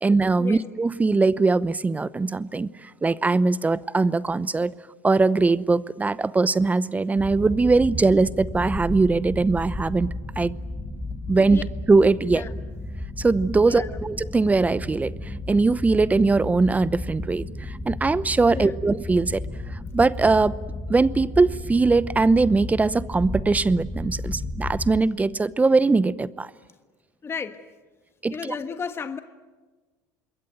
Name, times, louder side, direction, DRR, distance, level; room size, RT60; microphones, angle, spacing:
voice 1, 0.0-2.7 3.0-4.7 5.0-10.5 11.3-11.6 11.9-12.4 13.2-19.4 19.9-20.5 20.9-26.5 28.2-28.3, right 3 dB, 15° right, 0.8 m, -21 dB
sound 1, 7.2-25.0, left 2 dB, 10° left, 3.7 m, -33 dB
voice 2, 13.6-14.0 18.5-18.7 27.2-27.6 28.3-29.2, left 5 dB, 25° left, 1.3 m, -33 dB
26.5 x 22.0 x 9.2 m
hypercardioid pair, 85°, 9 cm